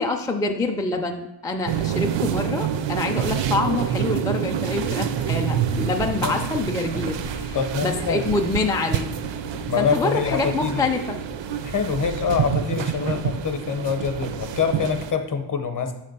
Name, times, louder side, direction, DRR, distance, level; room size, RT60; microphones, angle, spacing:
voice 1, 0.0-9.1 9.8-11.2, left 3 dB, 10° left, 3 dB, 0.4 m, -26 dB
sound 1, 1.7-15.1, right 9 dB, 65° right, 0.5 m, -27 dB
Livestock farm animals working animals, 4.3-12.5, left 6 dB, 90° left, 0.6 m, -41 dB
voice 2, 7.5-8.2 9.7-10.9 11.6-15.9, left 6 dB, 40° left, 7 dB, 0.8 m, -25 dB
6.5 x 3.3 x 5.3 m, 0.93 s
wide cardioid pair, 95°, 48 cm